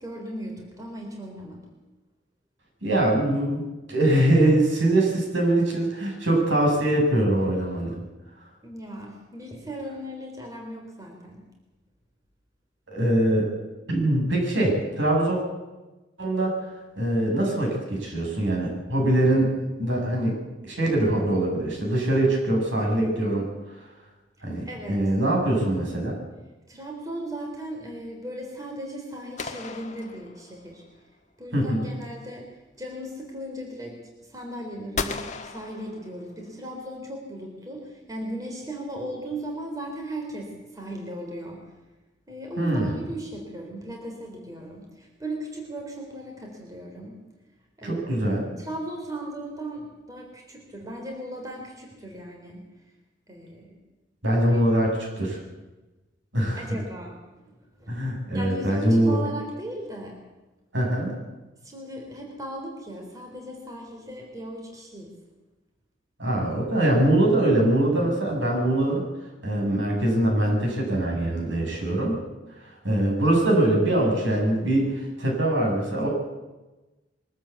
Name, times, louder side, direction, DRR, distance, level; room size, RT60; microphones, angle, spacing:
voice 1, 0.0-1.6 8.6-11.4 24.7-25.0 26.7-30.8 31.4-41.6 42.3-47.2 47.8-48.2 48.6-52.6 53.3-53.8 54.5-54.9 56.6-57.1 57.4-57.9 58.3-60.2 61.6-65.1, right 1 dB, 20° right, 0 dB, 3.8 m, -37 dB
voice 2, 2.8-8.0 12.9-13.4 13.9-15.4 16.2-16.5 17.0-20.3 20.6-23.5 24.4-26.2 31.5-31.9 42.6-43.0 47.8-48.6 54.2-55.4 56.3-56.7 57.9-59.2 60.7-61.1 66.2-69.0 69.4-72.2 72.8-76.1, right 1 dB, 75° right, 0 dB, 7.4 m, -23 dB
sound 1, 29.4-30.8 35.0-36.5, left 4 dB, 40° left, 1.5 m, -35 dB
23.5 x 13.5 x 8.4 m, 1.1 s
head